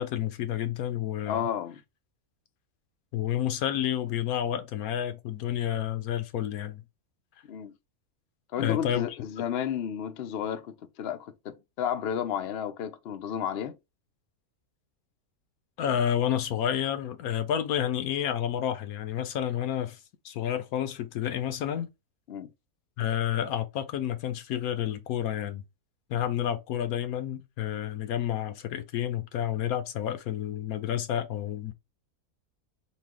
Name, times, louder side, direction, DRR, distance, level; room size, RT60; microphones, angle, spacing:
voice 1, 0.0-1.5 3.1-6.8 8.6-9.1 9.4-9.5 15.8-20.0 20.2-21.9 23.0-25.6 26.1-31.7, left 10 dB, 75° left, 1.1 m, -30 dB
voice 2, 1.3-1.8 7.5-7.7 8.5-13.7 22.3-22.5, left 9 dB, 60° left, 0.7 m, -32 dB
4.0 x 2.3 x 3.5 m
omnidirectional pair, 1.6 m